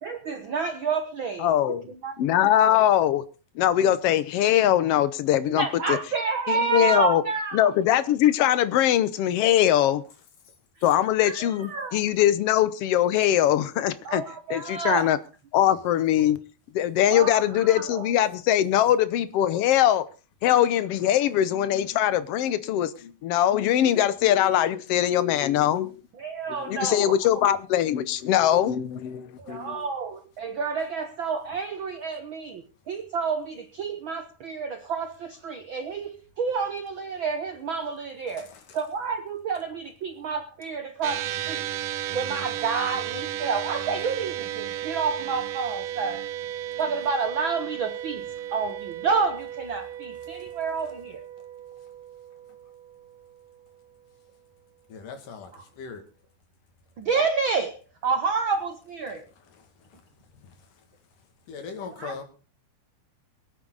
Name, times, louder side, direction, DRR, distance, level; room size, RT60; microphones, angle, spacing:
voice 1, 0.0-2.8 5.5-7.7 10.8-10.9 11.2-12.0 14.0-15.1 17.1-18.1 26.2-27.4 29.4-41.7 42.1-46.2 46.8-48.2 48.5-51.3 55.5-55.7 57.0-59.3 61.9-62.2, right 5 dB, 70° right, 1.1 m, -29 dB
voice 2, 1.4-1.8 2.2-3.2 3.5-6.0 6.5-7.2 7.5-10.0 10.8-14.2 14.5-15.2 15.5-16.4 16.7-20.1 20.4-26.0 26.7-29.8, left 11 dB, 70° left, 1.5 m, -22 dB
sound 1, 41.0-53.6, right 11 dB, 90° right, 2.5 m, -34 dB
voice 3, 54.9-56.0 59.9-60.0 60.4-60.6 61.5-62.2, left 5 dB, 90° left, 3.8 m, -39 dB
23.0 x 9.1 x 4.0 m
omnidirectional pair, 3.6 m